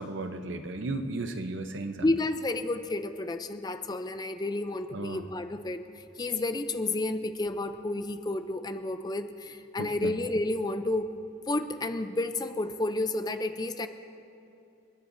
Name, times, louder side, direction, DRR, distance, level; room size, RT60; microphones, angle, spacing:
voice 1, 0.0-2.1 4.9-5.2 9.8-10.1, right 2 dB, 70° right, 8 dB, 0.7 m, -35 dB
voice 2, 2.0-5.8 6.2-11.1 11.5-13.9, left 2 dB, 20° left, 9 dB, 0.5 m, -31 dB
29.0 x 9.9 x 2.6 m, 2.8 s
head